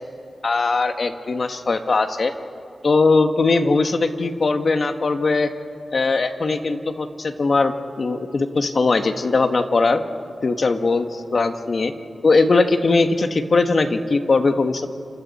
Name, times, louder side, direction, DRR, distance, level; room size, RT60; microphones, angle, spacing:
voice 1, 0.4-2.3 2.8-5.5 5.9-10.0 10.4-11.9 12.2-14.9, left 3 dB, 55° left, 7 dB, 1.4 m, -20 dB
29.0 x 26.5 x 4.3 m, 2.6 s
wide cardioid pair, 80°, 0 cm